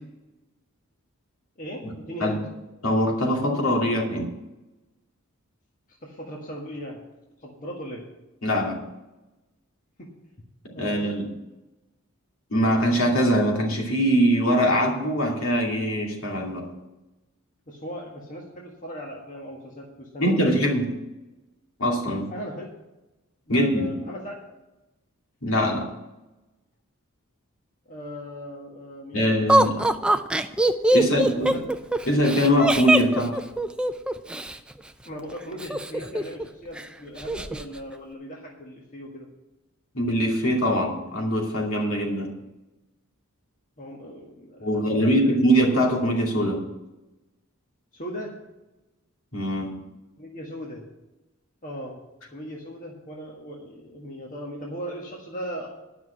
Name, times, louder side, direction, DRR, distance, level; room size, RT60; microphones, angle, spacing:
voice 1, 1.6-2.4 6.0-7.0 7.4-8.1 10.0-10.1 10.7-11.2 17.7-20.5 22.3-22.7 23.5-24.4 27.9-29.8 31.0-31.6 35.0-39.3 43.8-45.3 47.9-48.3 50.2-50.9 51.6-52.0 52.3-55.7, equal, 40° left, -2 dB, 1.6 m, -38 dB
voice 2, 2.8-4.3 8.4-8.8 10.8-11.2 12.5-16.7 20.2-20.9 21.8-22.3 23.5-23.9 25.4-25.9 29.1-29.8 30.9-31.6 32.1-33.4 39.9-42.3 44.6-46.6 49.3-49.8, equal, 70° left, -1 dB, 2.6 m, -22 dB
Laughter, 29.5-34.6 35.6-36.5 36.8-36.9 37.2-37.6, right 1 dB, 5° right, 0.4 m, -22 dB
11.0 x 5.9 x 8.2 m, 1.0 s
head